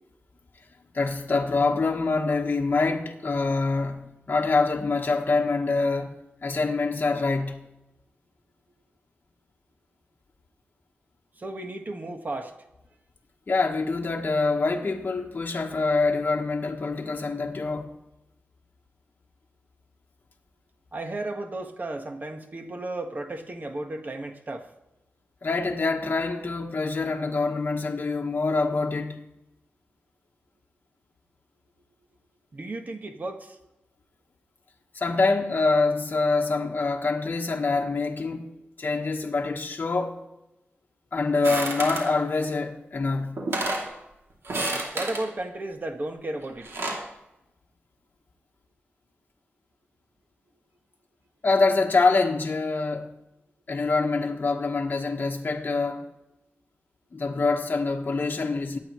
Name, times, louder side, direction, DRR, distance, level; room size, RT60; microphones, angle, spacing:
voice 1, 0.9-7.6 13.5-18.0 25.4-29.2 34.9-38.5 38.8-40.2 41.1-43.5 51.4-53.1 53.7-56.0 57.1-58.8, left 3 dB, 50° left, 1.5 m, -25 dB
voice 2, 11.4-12.5 20.9-24.7 32.5-33.6 44.9-46.7, right 2 dB, 45° right, 1.6 m, -34 dB
sound 1, 41.4-42.1 43.0-43.1 43.4-43.9 44.4-45.3 46.4-47.1, right 2 dB, 80° right, 2.8 m, -30 dB
23.5 x 9.5 x 3.2 m
wide cardioid pair, 90°, 4 cm